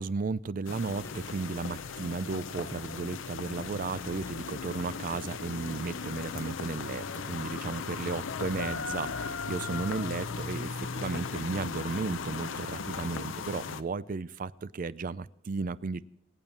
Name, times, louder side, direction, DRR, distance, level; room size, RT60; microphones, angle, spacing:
voice 1, 0.0-16.0, right 4 dB, 45° right, 18 dB, 0.4 m, -34 dB
sound 1, 0.6-13.8, left 5 dB, 80° left, 0.6 m, -37 dB
sound 2, 0.9-4.1, left 1 dB, 15° left, 0.7 m, -57 dB
23.5 x 8.9 x 4.3 m, 0.84 s
head